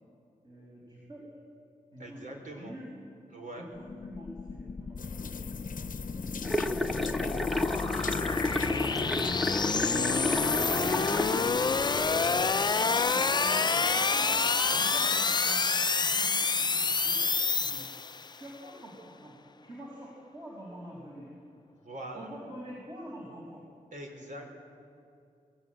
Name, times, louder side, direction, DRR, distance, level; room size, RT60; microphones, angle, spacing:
voice 1, 0.4-1.3 1.9-2.3 2.5-2.9 3.6-3.7 4.0-7.3 7.8-10.1 10.8-11.8 12.3-14.4 14.7-17.9 18.3-19.4 19.6-21.3 22.1-23.7, equal, 35° right, -3 dB, 6.0 m, -46 dB
voice 2, 2.0-2.7 3.3-3.6 7.7-8.1 10.7-11.6 21.8-22.3 23.9-24.5, right 1 dB, 70° right, 2 dB, 4.8 m, -43 dB
sound 1, 3.8-18.4, left 4 dB, 30° left, 0.5 m, -28 dB
sound 2, 5.0-12.5, left 7 dB, 80° left, 0.8 m, -43 dB
sound 3, 6.4-11.4, left 2 dB, ahead, 1.0 m, -31 dB
23.5 x 20.5 x 9.3 m, 2.6 s
wide cardioid pair, 125°, 14 cm